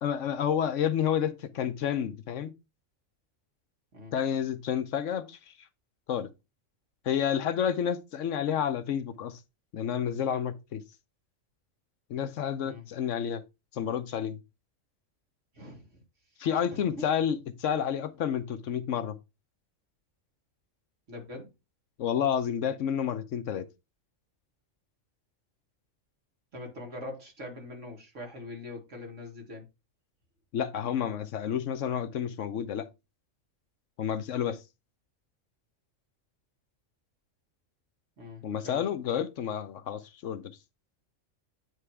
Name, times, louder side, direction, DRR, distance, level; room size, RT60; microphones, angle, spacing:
voice 1, 0.0-2.5 4.1-5.5 6.1-6.3 7.0-9.4 9.7-10.8 12.1-13.4 13.7-14.4 16.4-19.1 22.0-23.7 30.5-32.9 34.0-34.6 38.4-40.5, left 8 dB, 70° left, 1.0 m, -30 dB
voice 2, 15.5-16.0 16.7-17.1 21.1-21.5 26.5-29.7 38.2-38.8, left 2 dB, 65° right, 2.5 m, -42 dB
9.3 x 3.3 x 4.7 m
omnidirectional pair, 1.3 m